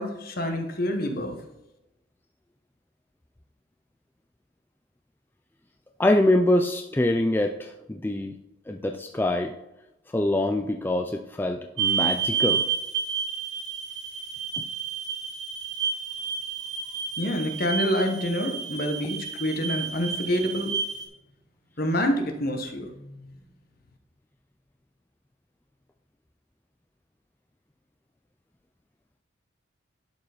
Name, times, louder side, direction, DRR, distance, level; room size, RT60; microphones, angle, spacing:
voice 1, 0.0-1.4 17.2-20.7 21.8-23.4, equal, 50° left, 5 dB, 1.2 m, -27 dB
voice 2, 6.0-8.3 8.7-9.5 10.1-12.6, left 1 dB, 10° left, 3 dB, 0.3 m, -24 dB
sound 1, 11.8-21.1, right 7 dB, 65° right, 2.4 m, -30 dB
11.5 x 4.8 x 4.9 m, 0.94 s
head